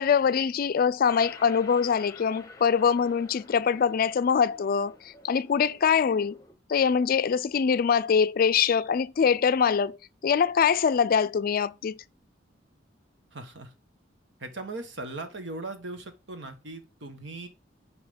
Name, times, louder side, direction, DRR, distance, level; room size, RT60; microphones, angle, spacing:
voice 1, 0.0-6.4 6.7-10.0 10.2-12.0, left 6 dB, 50° left, 0.4 m, -23 dB
sound 1, 1.1-6.5, left 3 dB, 20° left, 0.9 m, -50 dB
voice 2, 13.3-13.7 14.4-17.5, right 2 dB, 75° right, 1.4 m, -39 dB
5.6 x 4.9 x 5.2 m
head